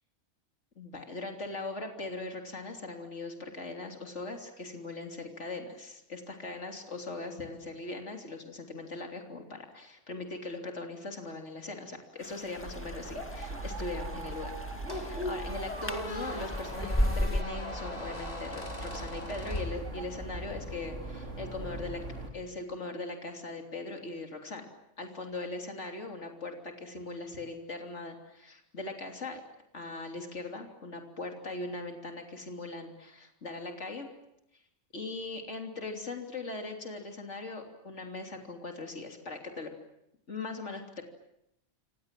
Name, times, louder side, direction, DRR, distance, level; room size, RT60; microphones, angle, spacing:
voice 1, 0.8-14.5 14.9-22.0 22.3-24.6 25.0-29.4 29.7-34.1 34.9-39.7 40.3-41.0, left 2 dB, 75° left, 3 dB, 3.6 m, -40 dB
sound 1, 12.2-17.4, left 1 dB, 10° left, 2.1 m, -35 dB
sound 2, 12.5-22.3, right 1 dB, 75° right, 4.7 m, -40 dB
Squeak, 14.9-20.4, left 1 dB, 35° left, 3.2 m, -40 dB
28.5 x 26.5 x 7.6 m, 0.82 s
omnidirectional pair, 1.2 m